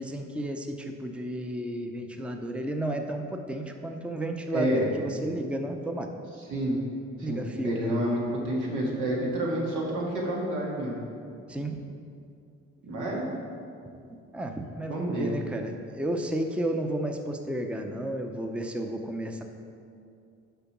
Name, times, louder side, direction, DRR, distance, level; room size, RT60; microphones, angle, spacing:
voice 1, 0.0-6.1 7.2-7.9 11.5-11.8 14.1-19.4, right 1 dB, 5° right, 4 dB, 0.6 m, -32 dB
voice 2, 4.5-4.9 6.5-6.8 7.2-11.0 12.8-13.2 14.9-15.4, right 1 dB, 90° right, -3 dB, 1.7 m, -29 dB
6.8 x 5.0 x 6.0 m, 2.4 s
cardioid pair, 90°, 30 cm